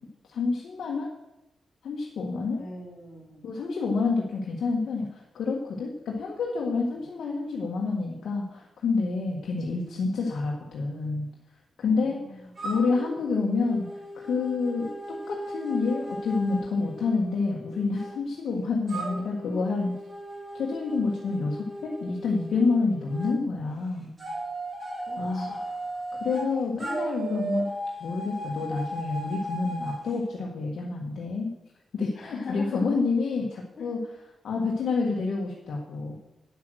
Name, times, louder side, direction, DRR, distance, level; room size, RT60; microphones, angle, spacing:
voice 1, 0.3-1.1 1.8-2.6 3.4-11.3 11.8-12.2 12.6-13.9 14.1-19.9 20.5-24.1 25.2-25.8 26.2-27.7 28.0-31.5 31.9-34.0 34.4-36.2, left 4 dB, 70° left, -2 dB, 1.6 m, -28 dB
voice 2, 2.6-3.4 6.9-7.0 11.8-12.7 25.0-25.5 32.2-32.8 33.8-33.9, left 3 dB, 55° left, 0 dB, 3.5 m, -42 dB
sound 1, 12.6-18.1 18.9-23.3 24.2-26.5 26.8-30.0, right 1 dB, 25° right, 3.5 m, -36 dB
9.6 x 8.3 x 6.4 m, 0.92 s
wide cardioid pair, 155°, 0 cm